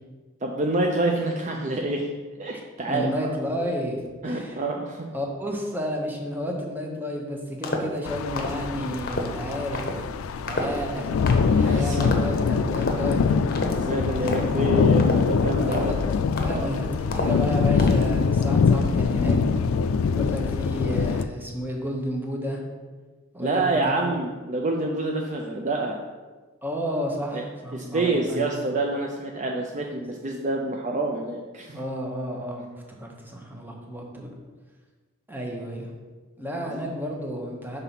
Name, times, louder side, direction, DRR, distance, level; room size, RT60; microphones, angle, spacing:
voice 1, 0.4-2.1 2.4-3.1 4.2-5.1 10.6-10.7 11.5-12.0 13.6-15.9 16.4-16.7 23.4-26.0 27.3-27.4 27.7-31.8 36.7-36.8, right 2 dB, 35° right, 1 dB, 0.5 m, -27 dB
voice 2, 2.9-4.6 5.1-9.8 10.5-11.1 11.6-13.3 14.2-14.6 15.6-16.0 16.3-19.4 20.1-22.6 23.3-24.0 26.6-28.6 29.8-30.0 31.7-34.3 35.3-35.9 36.4-37.8, equal, 10° right, 0 dB, 0.9 m, -31 dB
sound 1, 7.6-8.0 8.4-8.6 9.1-9.3 9.7-10.0 10.5-10.9 11.3-11.5 12.0-12.4 12.7-13.1 13.5-13.8 14.3-14.6 15.0-15.3 15.7-16.0 16.4-16.8 17.1-17.5 17.8-18.1, left 2 dB, 45° left, 0.8 m, -30 dB
sound 2, 8.0-21.2, left 5 dB, 80° left, 0.3 m, -23 dB
5.8 x 3.9 x 5.8 m, 1.3 s
head